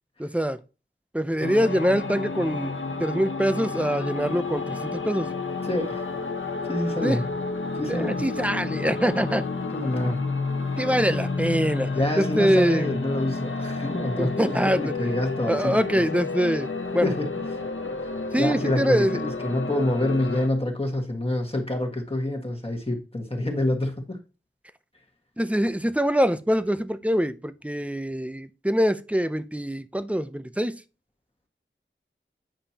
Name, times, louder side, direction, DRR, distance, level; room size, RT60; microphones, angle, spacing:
voice 1, 0.2-0.6 1.1-5.3 7.0-7.2 7.9-9.5 10.8-11.9 12.2-12.9 14.2-14.9 15.5-16.7 16.9-17.1 18.3-19.2 25.4-30.8, equal, 5° right, 0.6 m, -24 dB
sound 1, 1.4-20.5, left 3 dB, 80° left, 0.9 m, -30 dB
voice 2, 5.6-6.0 6.7-7.2 7.7-8.2 9.7-10.2 11.9-16.0 17.0-17.3 18.4-24.2, left 1 dB, 25° left, 1.6 m, -27 dB
9.1 x 5.1 x 2.9 m
wide cardioid pair, 45°, 21 cm